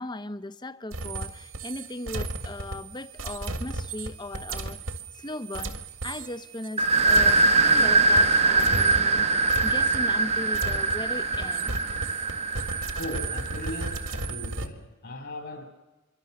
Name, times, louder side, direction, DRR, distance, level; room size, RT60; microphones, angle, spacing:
voice 1, 0.0-4.8 5.2-5.8 6.0-9.3 9.6-11.8, left 2 dB, 20° left, 0.9 m, -37 dB
sound 1, 0.9-14.7, right 2 dB, 75° right, 1.8 m, -35 dB
sound 2, 6.8-14.2, right 3 dB, 30° right, 0.9 m, -23 dB
voice 2, 12.9-15.6, left 1 dB, 55° left, 2.9 m, -38 dB
26.5 x 23.5 x 6.6 m
head